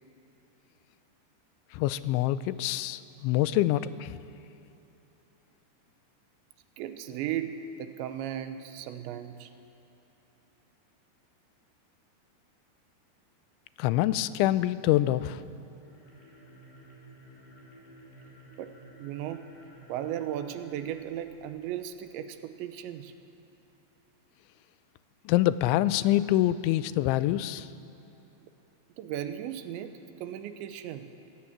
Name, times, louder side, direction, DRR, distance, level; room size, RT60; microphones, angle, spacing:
voice 1, 1.7-4.1 13.8-15.4 25.3-27.7, left 14 dB, 90° left, 15 dB, 3.0 m, -25 dB
voice 2, 6.8-9.5 18.6-18.7 19.0-19.5 19.9-23.1 28.4-28.5 29.0-31.1, right 10 dB, 80° right, 9 dB, 3.2 m, -36 dB
sound 1, 15.7-22.0, right 1 dB, 60° left, 6.3 m, -53 dB
23.0 x 16.0 x 8.9 m, 2.9 s
omnidirectional pair, 5.3 m